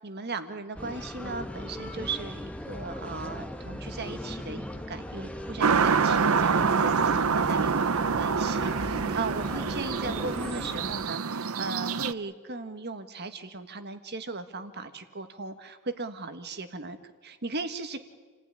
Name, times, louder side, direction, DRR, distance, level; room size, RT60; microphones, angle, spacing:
voice 1, 0.0-17.0 17.2-18.0, right 3 dB, 50° right, 8 dB, 1.7 m, -37 dB
sound 1, 0.7-11.1, left 1 dB, 5° left, 1.3 m, -38 dB
sound 2, 5.6-12.1, right 5 dB, 70° right, 0.7 m, -26 dB
29.0 x 16.0 x 9.9 m, 1.4 s
head